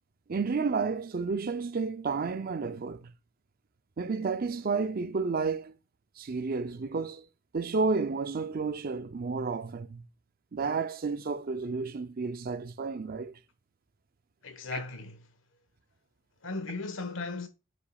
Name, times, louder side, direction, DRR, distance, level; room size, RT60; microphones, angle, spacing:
voice 1, 0.3-3.1 4.0-5.7 6.2-7.2 7.5-10.0 10.5-13.3 14.7-14.8, right 4 dB, 50° right, 0.5 m, -31 dB
voice 2, 14.4-15.2 16.4-17.5, left 3 dB, 85° left, 1.3 m, -36 dB
7.7 x 5.9 x 2.3 m
head